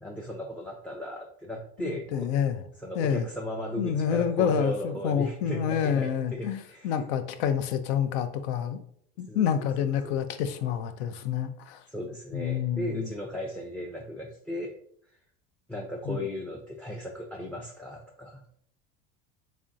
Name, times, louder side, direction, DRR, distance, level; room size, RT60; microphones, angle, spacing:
voice 1, 0.0-2.5 2.8-7.0 9.3-10.1 11.9-14.7 15.7-18.4, equal, 5° left, 1 dB, 0.4 m, -36 dB
voice 2, 1.8-2.6 3.0-3.2 3.8-8.8 9.2-11.8 12.3-13.1 16.1-16.2, left 8 dB, 80° left, 10 dB, 0.5 m, -28 dB
3.6 x 3.3 x 2.5 m, 0.66 s
supercardioid pair, 95°, 32 cm